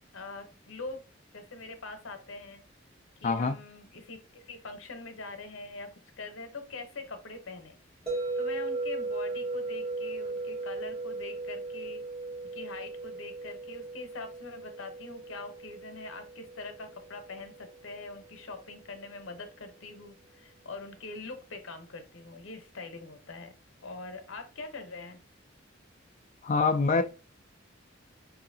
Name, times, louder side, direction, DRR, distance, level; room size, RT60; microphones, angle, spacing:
voice 1, 0.1-1.0 1.3-2.6 3.2-7.8 8.4-12.0 12.5-23.5 23.8-25.2, left 3 dB, 85° left, 0.8 m, -43 dB
voice 2, 3.2-3.6 26.4-27.0, left 4 dB, 35° left, 0.3 m, -25 dB
sound 1, 8.1-18.1, right 3 dB, 30° right, 1.8 m, -37 dB
4.8 x 2.7 x 2.7 m
head